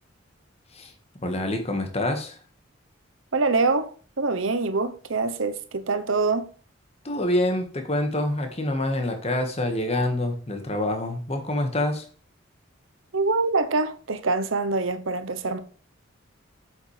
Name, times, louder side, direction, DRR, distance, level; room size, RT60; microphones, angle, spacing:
voice 1, 1.2-2.4 7.0-12.1, left 1 dB, 30° left, 1.6 m, -26 dB
voice 2, 3.3-6.5 13.1-15.6, right 3 dB, 80° right, 0.9 m, -25 dB
8.1 x 7.1 x 3.3 m
head